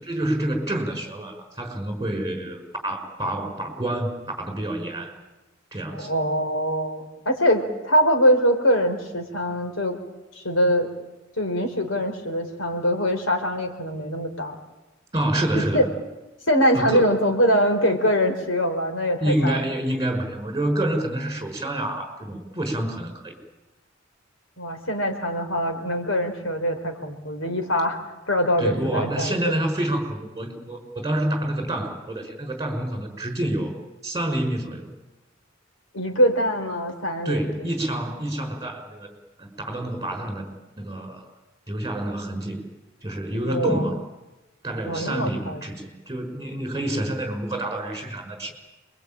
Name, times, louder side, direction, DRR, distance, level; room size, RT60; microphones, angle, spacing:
voice 1, 0.0-5.1 5.7-6.1 15.1-15.9 16.7-17.2 19.2-23.3 28.6-33.7 34.0-34.9 37.2-39.1 39.4-40.5 40.8-41.2 41.7-42.7 43.0-44.0 44.6-48.5, right 1 dB, 15° right, 3 dB, 5.6 m, -28 dB
voice 2, 5.9-10.0 10.3-10.9 11.4-14.5 15.7-15.8 16.5-19.6 24.6-28.0 28.3-29.6 35.9-37.7 43.5-43.8 44.8-45.6, equal, 85° left, 5 dB, 4.4 m, -23 dB
28.5 x 23.0 x 8.9 m, 1.0 s
head